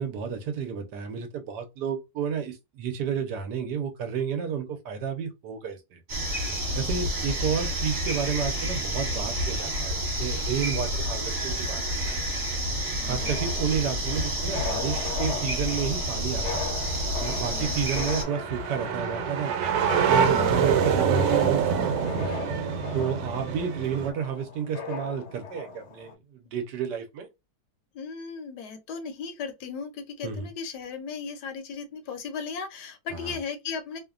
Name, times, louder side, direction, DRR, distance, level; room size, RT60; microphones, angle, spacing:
voice 1, 0.0-6.0 6.7-12.4 13.0-16.7 17.2-19.5 20.1-22.4 22.9-27.3 30.2-30.5 33.1-33.4, right 7 dB, 70° right, 1.2 m, -31 dB
sound 1, 6.1-18.2, equal, 40° right, 1.4 m, -29 dB
voice 2, 13.0-13.4 17.4-17.8 20.3-20.6 27.9-34.0, left 5 dB, 75° left, 1.1 m, -36 dB
sound 2, 13.1-26.1, left 5 dB, 60° left, 0.8 m, -38 dB
sound 3, 16.3-24.1, right 7 dB, 90° right, 1.3 m, -26 dB
3.1 x 2.1 x 2.3 m
omnidirectional pair, 2.0 m